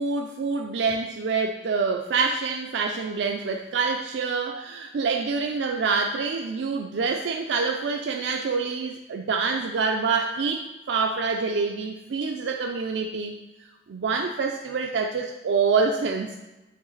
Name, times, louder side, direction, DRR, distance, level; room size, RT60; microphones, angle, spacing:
voice 1, 0.0-16.4, right 4 dB, 80° right, 3 dB, 0.4 m, -26 dB
7.7 x 3.1 x 3.9 m, 1.1 s
head